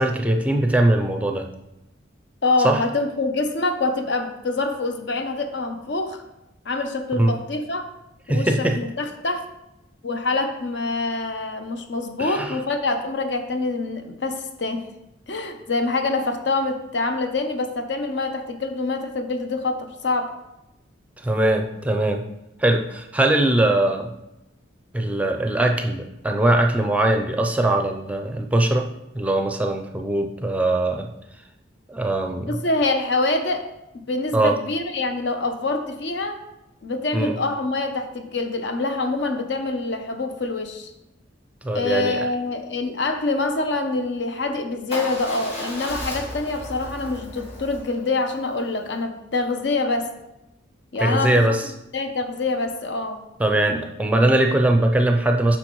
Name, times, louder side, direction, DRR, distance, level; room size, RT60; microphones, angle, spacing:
voice 1, 0.0-1.5 2.6-2.8 7.2-7.3 8.3-8.8 12.2-12.6 21.2-22.2 22.6-24.1 24.9-28.9 29.1-31.1 31.9-32.6 34.3-34.5 37.1-37.3 41.6-42.3 51.0-51.7 53.4-55.6, right 1 dB, 5° right, 4 dB, 0.5 m, -21 dB
voice 2, 2.4-6.2 6.7-7.9 8.3-9.5 10.0-14.8 15.3-20.3 32.5-33.7 33.9-36.4 36.8-40.9 41.7-50.1 50.9-51.5 51.9-53.2, left 3 dB, 65° left, 7 dB, 0.8 m, -25 dB
Motorcycle / Engine starting / Idling, 44.9-49.0, left 1 dB, 35° left, 1.6 m, -35 dB
8.1 x 5.8 x 3.1 m, 0.90 s
head